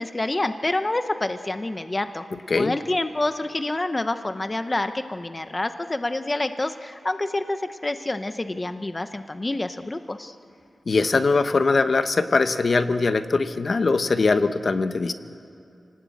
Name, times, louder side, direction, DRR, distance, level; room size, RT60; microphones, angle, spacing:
voice 1, 0.0-2.3 2.6-10.3, left 2 dB, 25° left, 9 dB, 0.8 m, -27 dB
voice 2, 2.3-2.7 10.9-15.1, left 3 dB, 50° left, 10 dB, 0.9 m, -21 dB
29.0 x 19.0 x 8.5 m, 2.6 s
wide cardioid pair, 135°, 0 cm